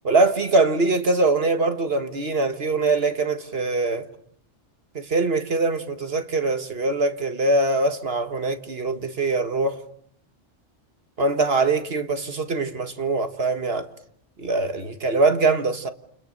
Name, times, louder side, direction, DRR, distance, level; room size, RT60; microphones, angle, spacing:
voice 1, 0.0-4.1 5.0-9.8 11.2-13.9 14.4-15.9, right 3 dB, 55° right, 1.9 m, -23 dB
29.0 x 29.0 x 6.7 m
omnidirectional pair, 1.2 m